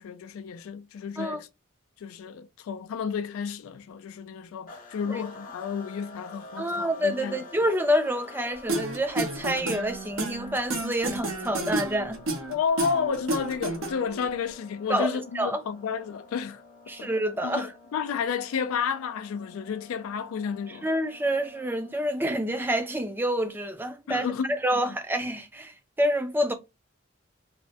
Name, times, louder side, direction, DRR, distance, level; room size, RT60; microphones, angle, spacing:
voice 1, 0.0-1.5 2.0-7.4 12.5-16.6 17.0-17.1 17.4-20.9 24.1-25.0, left 6 dB, 85° left, 0.3 m, -31 dB
sound 1, 4.7-22.5, left 2 dB, 40° left, 0.7 m, -48 dB
voice 2, 6.6-12.2 14.9-15.6 16.9-17.7 20.8-24.3 24.6-26.5, equal, 10° right, 0.3 m, -27 dB
sound 2, 8.7-14.2, right 2 dB, 75° right, 0.8 m, -31 dB
3.2 x 2.1 x 2.5 m
head